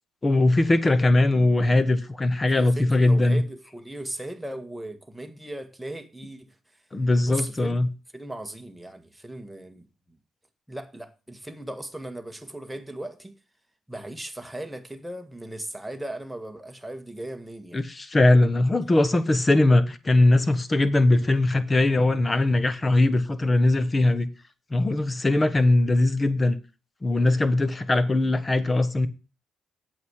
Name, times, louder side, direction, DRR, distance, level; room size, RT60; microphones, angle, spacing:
voice 1, 0.2-3.4 6.9-7.9 17.7-24.3 24.7-26.6 27.0-29.1, left 2 dB, 25° left, 1.2 m, -20 dB
voice 2, 2.5-6.5 7.2-7.8 8.1-10.2 10.7-13.4 13.9-17.8, right 1 dB, 5° right, 1.7 m, -37 dB
8.3 x 7.9 x 4.8 m
cardioid pair, 90°, 0 cm